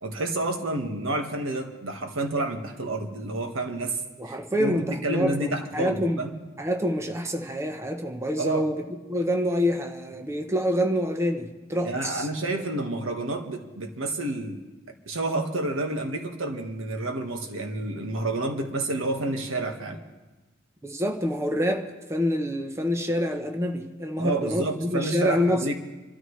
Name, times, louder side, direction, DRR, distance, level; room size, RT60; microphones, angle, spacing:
voice 1, 0.0-4.0 4.2-6.3 8.4-8.7 11.8-14.6 15.1-20.0 24.2-25.8, right 2 dB, 85° right, 4 dB, 1.5 m, -29 dB
voice 2, 4.2-6.2 6.6-8.8 9.1-12.3 20.8-25.8, equal, 15° right, 4 dB, 0.8 m, -27 dB
27.5 x 13.0 x 3.2 m, 1.2 s
head